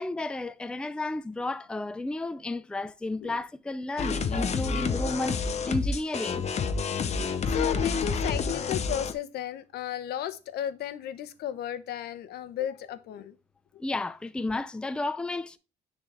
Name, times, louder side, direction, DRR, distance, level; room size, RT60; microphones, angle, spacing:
voice 1, 0.0-6.5 13.8-15.6, left 2 dB, 5° left, 0.5 m, -32 dB
sound 1, 4.0-9.1, left 5 dB, 40° left, 0.9 m, -29 dB
voice 2, 7.1-13.4 13.7-13.9, left 10 dB, 70° left, 0.9 m, -34 dB
9.8 x 4.0 x 3.3 m
cardioid pair, 110°, 17 cm